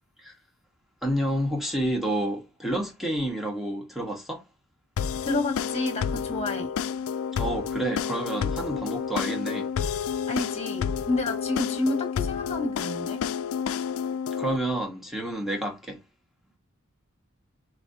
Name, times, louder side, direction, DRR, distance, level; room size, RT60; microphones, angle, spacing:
voice 1, 1.0-4.4 7.4-9.7 14.4-16.0, right 1 dB, ahead, 1.1 m, -29 dB
sound 1, 5.0-14.6, left 7 dB, 75° left, 0.3 m, -30 dB
voice 2, 5.2-6.7 10.3-13.2, left 2 dB, 30° left, 1.5 m, -29 dB
5.3 x 3.2 x 2.7 m
head